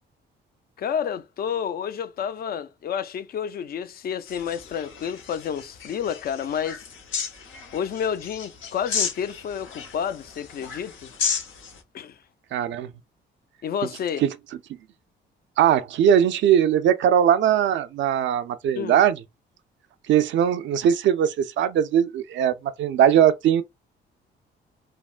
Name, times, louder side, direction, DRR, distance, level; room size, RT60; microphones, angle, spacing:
voice 1, 0.8-6.8 7.7-11.1 11.9-12.2 13.6-14.2 18.8-19.0, left 8 dB, 50° left, 0.4 m, -30 dB
sound 1, 4.3-11.8, left 6 dB, 85° left, 0.8 m, -33 dB
voice 2, 12.5-12.9 14.2-14.3 15.6-19.2 20.1-23.6, right 9 dB, 70° right, 0.4 m, -20 dB
3.3 x 2.1 x 2.4 m
cardioid pair, 90°, 20 cm